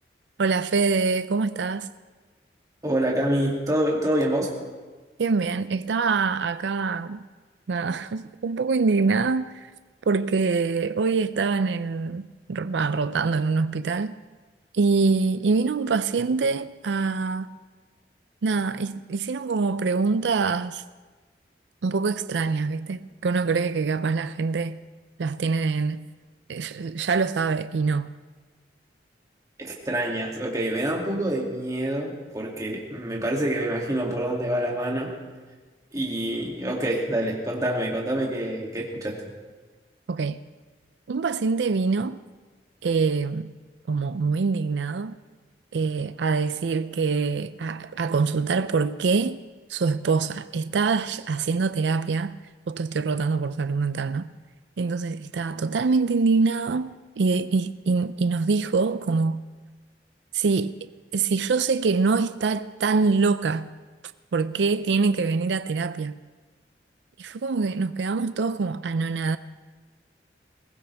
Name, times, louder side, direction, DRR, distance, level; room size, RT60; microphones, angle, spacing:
voice 1, 0.4-1.9 5.2-7.3 7.7-9.7 10.1-14.1 14.7-17.6 18.4-20.8 21.8-24.8 25.2-26.1 26.5-28.1 40.1-40.4 41.1-42.2 42.8-43.5 43.9-45.2 45.7-49.4 49.7-52.4 52.7-54.3 54.8-59.4 60.3-63.7 64.3-66.2 67.2-69.4, right 4 dB, 85° right, 0.5 m, -24 dB
voice 2, 2.8-4.5 29.6-35.1 35.9-39.2, right 1 dB, 20° right, 2.5 m, -26 dB
21.0 x 19.0 x 3.5 m
head